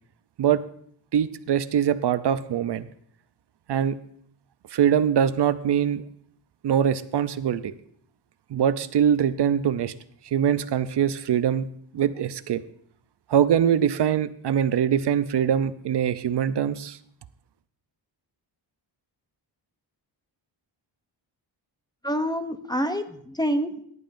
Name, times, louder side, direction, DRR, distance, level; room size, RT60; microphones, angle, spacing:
voice 1, 1.1-2.9 3.7-4.0 4.7-6.0 6.6-7.7 8.5-9.9 10.2-11.7 11.9-12.6 13.3-17.0, right 9 dB, 60° right, 13 dB, 0.6 m, -23 dB
voice 2, 22.0-23.8, equal, 10° left, 8 dB, 0.6 m, -27 dB
19.0 x 11.0 x 2.6 m, 0.63 s
wide cardioid pair, 135°, 46 cm